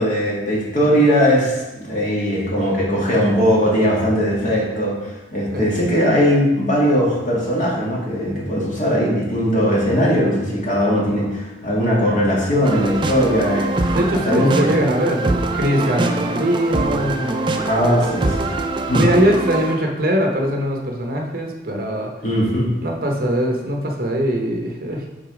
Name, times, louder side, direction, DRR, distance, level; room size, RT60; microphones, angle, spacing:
voice 1, 0.0-14.0 14.2-14.7 17.7-18.5 18.9-19.0 22.2-22.7, equal, 45° left, -4 dB, 1.9 m, -19 dB
sound 1, 12.6-19.8, right 2 dB, 25° right, 0.4 m, -23 dB
voice 2, 13.9-18.4 18.9-22.1 22.8-25.1, equal, 55° right, 1 dB, 0.9 m, -21 dB
6.5 x 4.0 x 4.9 m, 1.1 s
head